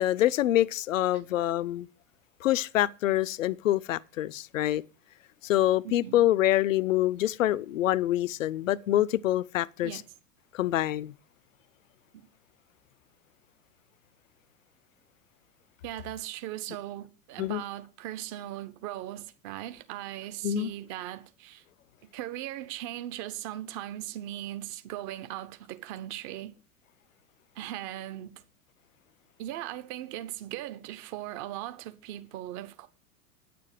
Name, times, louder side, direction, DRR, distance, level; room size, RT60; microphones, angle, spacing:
voice 1, 0.0-1.9 2.4-4.8 5.4-10.0 10.5-11.1 17.4-17.6 20.4-20.7, left 13 dB, 60° left, 0.7 m, -26 dB
voice 2, 5.8-6.2 9.8-10.0 12.1-12.3 15.8-21.6 22.1-26.5 27.5-28.4 29.4-32.9, right 13 dB, 40° right, 1.3 m, -39 dB
9.6 x 6.9 x 7.7 m
figure-of-eight pair, 90°, 44 cm